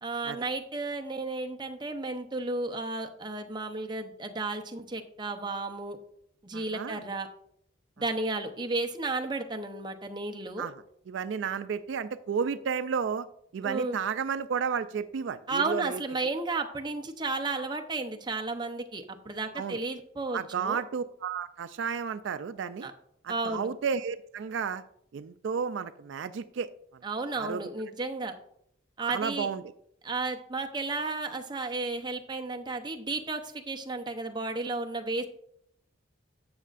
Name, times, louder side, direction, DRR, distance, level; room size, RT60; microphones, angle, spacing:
voice 1, 0.0-6.0 6.4-7.3 8.0-10.7 13.6-14.0 15.5-20.8 22.8-22.9 23.3-23.7 27.0-28.3 29.0-29.5 30.0-35.3, right 3 dB, 25° right, 4 dB, 0.7 m, -33 dB
voice 2, 6.5-7.0 10.6-10.7 11.1-13.3 13.5-16.0 19.6-19.8 20.3-22.9 23.2-24.8 25.1-26.7 27.3-27.7 29.0-29.6, right 6 dB, 75° right, 12 dB, 0.3 m, -32 dB
12.0 x 7.3 x 2.5 m, 0.72 s
head